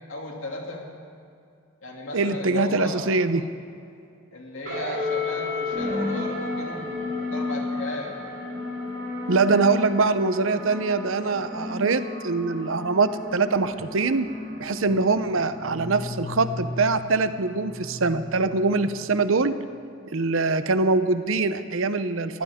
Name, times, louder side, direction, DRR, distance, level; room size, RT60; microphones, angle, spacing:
voice 1, 0.1-0.9 1.8-3.1 4.3-8.1, left 2 dB, 75° left, -1 dB, 2.8 m, -35 dB
voice 2, 2.1-3.4 9.3-14.3 14.6-19.5 20.1-22.4, right 3 dB, 75° right, 11 dB, 0.7 m, -23 dB
sound 1, 4.6-19.4, left 2 dB, 55° right, 3.9 m, -33 dB
22.5 x 15.5 x 3.7 m, 2.5 s
head